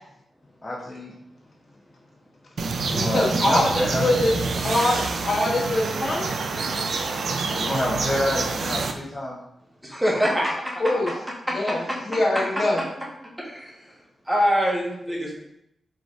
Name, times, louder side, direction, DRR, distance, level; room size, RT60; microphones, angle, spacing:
voice 1, 0.6-1.1 2.8-4.1 7.5-9.4, left 1 dB, 20° left, -7 dB, 0.9 m, -28 dB
sound 1, 2.6-8.9, right 4 dB, 70° right, 0.4 m, -27 dB
voice 2, 2.9-4.3 4.6-6.2 10.8-11.1 11.5-12.8, left 1 dB, 45° left, -3 dB, 1.3 m, -23 dB
voice 3, 9.8-11.0 11.5-11.7 13.4-13.7 14.3-15.4, equal, 10° right, -3 dB, 1.3 m, -24 dB
4.9 x 3.8 x 2.5 m, 0.80 s
cardioid pair, 90°, 0 cm